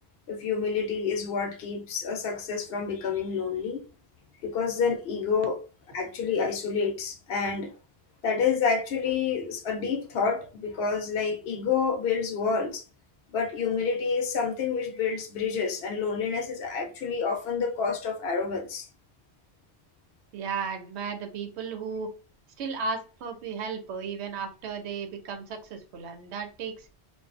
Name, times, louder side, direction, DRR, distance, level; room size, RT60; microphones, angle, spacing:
voice 1, 0.3-3.8 4.4-5.6 5.9-7.7 8.2-12.8 13.3-18.9, left 5 dB, 70° left, 0.8 m, -28 dB
voice 2, 20.3-22.1 22.6-26.9, right 5 dB, 85° right, 0.9 m, -34 dB
2.6 x 2.3 x 2.4 m
omnidirectional pair, 1.1 m